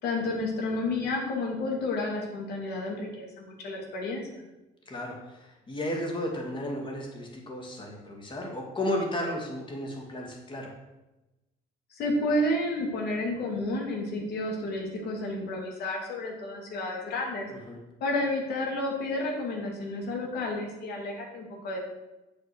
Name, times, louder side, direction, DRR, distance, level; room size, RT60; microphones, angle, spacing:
voice 1, 0.0-4.4 11.9-17.5 18.0-21.8, left 2 dB, 70° left, 0 dB, 2.9 m, -31 dB
voice 2, 4.9-10.7 17.5-17.8, left 1 dB, 30° left, 0 dB, 2.7 m, -34 dB
8.1 x 6.7 x 6.4 m, 1.0 s
cardioid pair, 110°, 17 cm